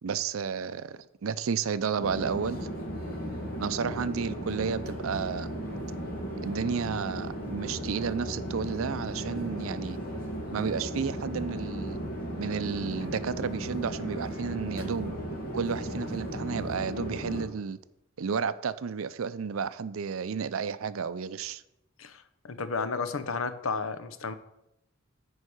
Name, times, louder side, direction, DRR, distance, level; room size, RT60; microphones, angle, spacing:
voice 1, 0.0-2.7 3.6-5.5 6.4-10.0 10.5-12.0 12.4-15.2 15.5-17.8 18.2-21.6, right 6 dB, 75° right, 14 dB, 0.5 m, -32 dB
Chatter / Fixed-wing aircraft airplane, 2.0-17.4, right 1 dB, 45° left, 2.3 m, -36 dB
voice 2, 22.0-24.3, left 4 dB, 70° left, 12 dB, 0.7 m, -33 dB
9.8 x 4.7 x 6.4 m, 0.87 s
head